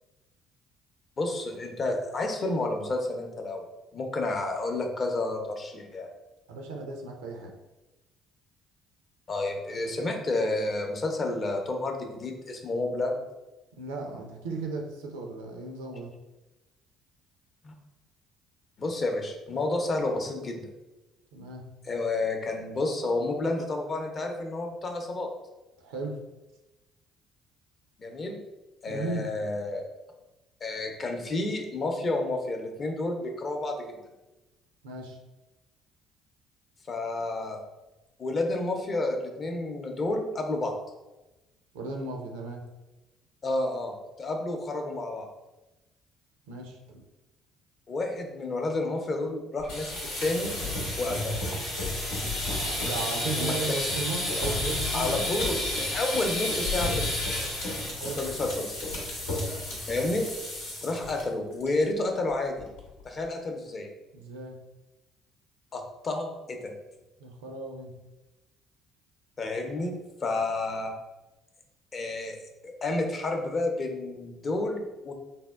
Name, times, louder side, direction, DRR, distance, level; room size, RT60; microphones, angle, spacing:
voice 1, 1.2-3.7 3.9-6.1 9.3-13.2 17.6-17.7 18.8-20.7 21.8-25.3 28.0-28.4 28.8-29.9 30.6-33.9 36.9-37.6 38.2-40.8 43.4-45.3 47.9-50.5 51.0-51.4 53.4-53.8 54.9-57.1 58.2-58.7 59.9-60.3 60.8-62.7 63.0-63.9 65.7-66.7 69.4-69.9 70.2-70.9 71.9-75.1, left 2 dB, 40° left, 3 dB, 0.6 m, -30 dB
voice 2, 6.5-7.5 13.7-16.1 21.3-21.7 25.8-26.2 28.9-29.3 34.8-35.2 41.7-42.6 46.5-47.1 52.5-55.3 57.9-58.4 64.1-64.6 67.2-68.0, right 3 dB, 80° right, 2 dB, 0.4 m, -36 dB
sound 1, 49.6-61.2 61.5-61.8 62.1-62.2 62.6-63.0, left 1 dB, 80° left, 0.8 m, -31 dB
3.4 x 2.2 x 2.3 m, 1.0 s
hypercardioid pair, 55°, 0 cm